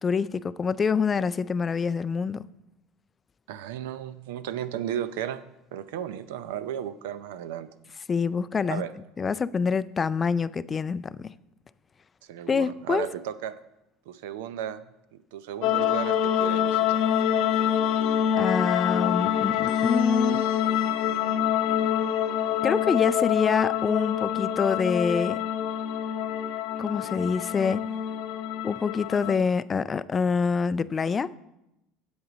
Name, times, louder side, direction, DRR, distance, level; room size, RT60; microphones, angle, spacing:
voice 1, 0.0-2.4 8.1-8.8 9.2-11.3 12.5-13.1 18.4-20.4 22.6-25.4 26.8-27.9 28.6-31.3, left 5 dB, 25° left, 0.3 m, -26 dB
voice 2, 3.5-5.4 5.7-7.7 8.7-8.9 12.3-13.5 14.1-14.8 15.1-17.0, right 10 dB, 90° right, 0.5 m, -34 dB
sound 1, 15.6-29.4, left 9 dB, 70° left, 0.6 m, -26 dB
8.1 x 7.9 x 5.0 m
supercardioid pair, 115°, 0 cm